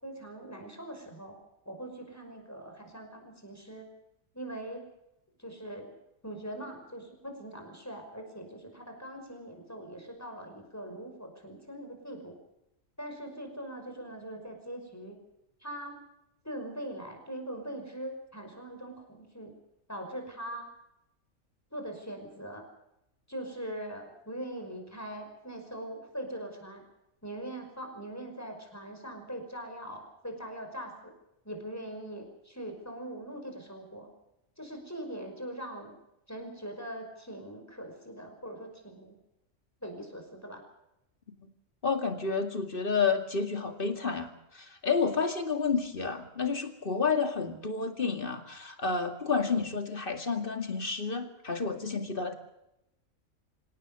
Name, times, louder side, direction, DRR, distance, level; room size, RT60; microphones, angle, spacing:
voice 1, 0.0-1.4 1.7-3.9 4.3-4.8 5.4-5.9 6.2-12.4 13.0-15.2 15.6-16.0 16.4-19.5 19.9-20.7 21.7-22.6 23.3-26.8 27.2-31.1 31.4-34.1 34.6-35.9 36.3-39.2 39.8-40.6, right 1 dB, 10° left, 4 dB, 5.5 m, -41 dB
voice 2, 41.8-52.3, left 5 dB, 40° left, 6 dB, 2.4 m, -30 dB
26.0 x 17.5 x 6.8 m, 0.88 s
omnidirectional pair, 1.4 m